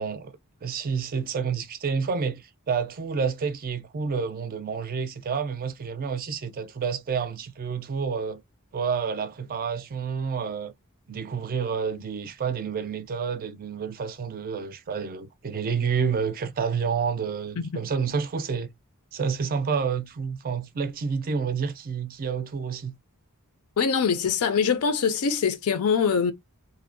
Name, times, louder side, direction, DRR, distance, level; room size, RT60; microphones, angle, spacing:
voice 1, 0.0-8.4 8.7-10.7 11.1-18.7 19.1-22.9, right 6 dB, 40° right, 0.4 m, -29 dB
voice 2, 23.8-26.3, left 6 dB, 85° left, 0.5 m, -23 dB
2.7 x 2.0 x 2.5 m
head